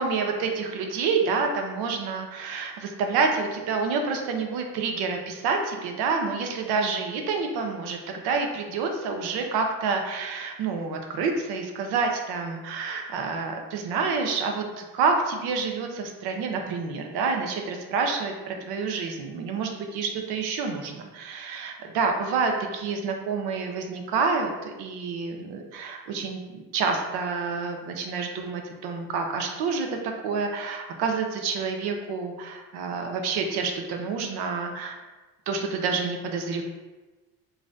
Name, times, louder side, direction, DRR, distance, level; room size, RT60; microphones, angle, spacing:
voice 1, 0.0-35.0 35.5-36.6, right 4 dB, 70° right, 3 dB, 0.6 m, -28 dB
5.1 x 2.5 x 2.6 m, 1.2 s
cardioid pair, 170°, 39 cm